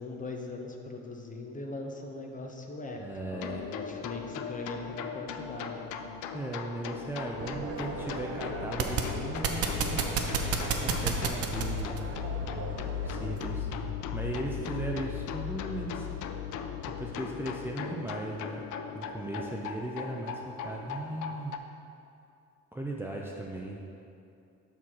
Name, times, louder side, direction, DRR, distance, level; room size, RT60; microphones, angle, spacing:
voice 1, 0.0-3.0 3.3-6.1, left 2 dB, 25° left, 2 dB, 0.8 m, -40 dB
voice 2, 3.0-3.7 6.3-10.0 10.8-12.1 13.0-16.1 17.0-18.6 18.9-21.6 22.7-23.8, right 2 dB, 5° right, -2 dB, 0.5 m, -37 dB
sound 1, 3.3-21.6, left 7 dB, 65° left, 0.5 m, -37 dB
sound 2, 7.4-13.5, right 5 dB, 45° right, 0.7 m, -33 dB
5.8 x 4.4 x 4.8 m, 2.6 s
supercardioid pair, 80°, 33 cm